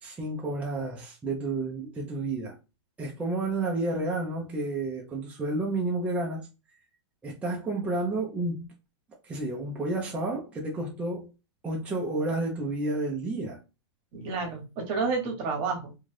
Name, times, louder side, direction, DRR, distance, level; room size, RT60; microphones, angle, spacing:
voice 1, 0.0-2.6 3.0-6.5 7.2-8.7 9.2-11.3 11.6-13.6, right 2 dB, 10° right, 0.5 m, -31 dB
voice 2, 14.1-16.0, right 4 dB, 35° right, 1.1 m, -30 dB
2.6 x 2.3 x 3.2 m
hypercardioid pair, 150°, 15 cm